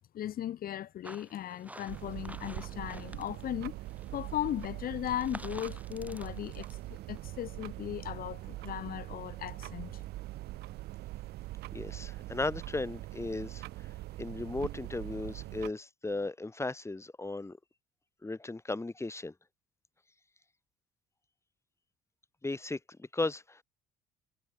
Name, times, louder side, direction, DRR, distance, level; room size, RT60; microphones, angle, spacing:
voice 1, 0.1-3.8 4.1-10.0, left 11 dB, 55° left, 1.5 m, -37 dB
sound 1, 1.0-3.5 3.8-7.3, right 1 dB, 10° right, 7.5 m, -51 dB
sound 2, 1.9-15.7, right 17 dB, 70° right, 1.5 m, -42 dB
voice 2, 11.7-13.9 14.2-17.6 18.2-19.3 22.4-23.6, left 2 dB, 15° left, 2.3 m, -36 dB
hypercardioid pair, 60°, 17 cm